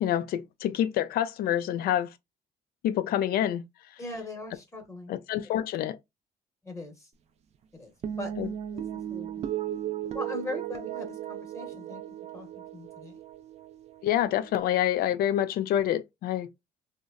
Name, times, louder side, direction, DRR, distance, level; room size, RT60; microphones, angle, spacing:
voice 1, 0.0-2.1 2.8-3.6 5.1-6.0 8.4-8.5 14.0-16.5, left 11 dB, 65° left, 0.4 m, -27 dB
voice 2, 4.0-5.2 6.6-7.1 7.7-7.9 8.2-8.3 8.7-8.8 9.1-9.5 10.1-12.0 12.3-13.2, left 2 dB, 15° left, 0.9 m, -40 dB
sound 1, 8.0-14.6, right 11 dB, 40° right, 0.4 m, -36 dB
2.8 x 2.1 x 2.4 m
cardioid pair, 110°, 17 cm